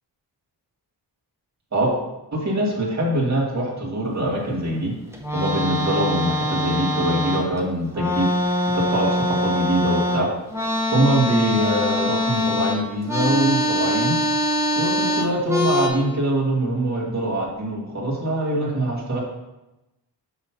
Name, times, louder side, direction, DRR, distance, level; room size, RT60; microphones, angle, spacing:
voice 1, 2.3-4.9 5.3-8.3 8.7-10.3 10.9-14.2 14.8-19.2, right 1 dB, 40° right, -3 dB, 1.8 m, -23 dB
sound 1, 5.1-7.6 7.9-15.9, left 1 dB, 5° right, 0.9 m, -23 dB
7.1 x 3.1 x 5.7 m, 0.97 s
wide cardioid pair, 130°, 43 cm